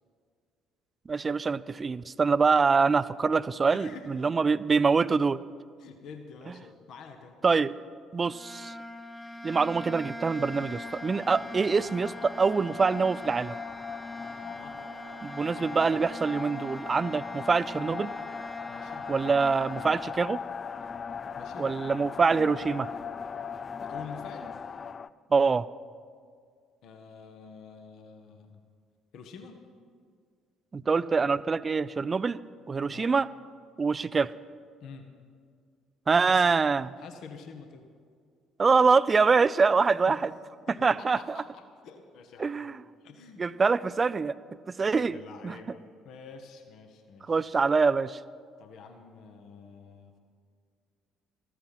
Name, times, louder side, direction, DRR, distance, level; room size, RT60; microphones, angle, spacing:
voice 1, 1.1-5.4 7.4-7.7 8.1-8.7 9.4-13.6 15.2-18.1 19.1-20.4 21.6-22.9 25.3-25.7 30.7-32.4 32.7-33.3 33.8-34.3 36.1-36.9 38.6-40.3 40.8-41.4 42.4-42.7 43.4-44.4 44.7-45.2 45.4-45.5 47.3-48.2, right 4 dB, 30° right, 17 dB, 0.4 m, -25 dB
voice 2, 3.7-4.1 5.8-7.4 14.3-14.8 15.4-15.8 18.6-19.1 21.4-21.7 23.8-24.5 26.8-28.6 29.1-29.6 32.9-33.1 34.8-35.1 36.2-36.5 36.9-37.9 40.1-40.2 40.7-43.5 44.9-47.4 48.6-50.2, left 5 dB, 55° left, 6 dB, 1.2 m, -47 dB
sound 1, 8.2-20.1, left 1 dB, 10° left, 0.9 m, -42 dB
sound 2, 10.4-25.1, left 6 dB, 35° left, 0.4 m, -39 dB
14.5 x 14.5 x 5.8 m, 2.1 s
figure-of-eight pair, 50°, 0 cm